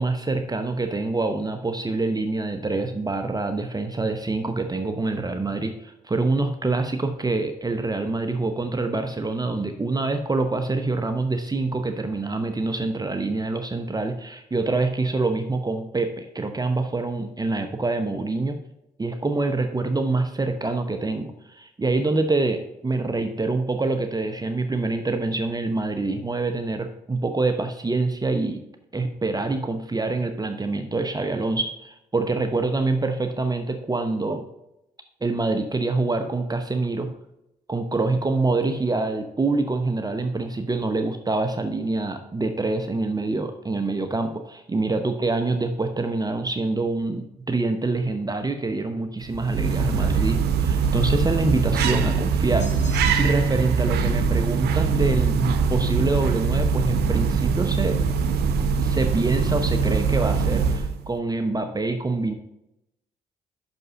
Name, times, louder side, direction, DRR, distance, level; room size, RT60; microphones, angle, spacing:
voice 1, 0.0-18.6 19.0-28.6 28.9-34.5 35.2-37.1 37.7-58.0 58.8-62.3, right 3 dB, 25° right, 7 dB, 0.9 m, -26 dB
sound 1, 49.2-61.1, right 5 dB, 80° right, 0.7 m, -22 dB
sound 2, 52.6-53.6, left 4 dB, 45° left, 2.8 m, -43 dB
6.2 x 5.4 x 5.6 m, 0.85 s
supercardioid pair, 55°, 17 cm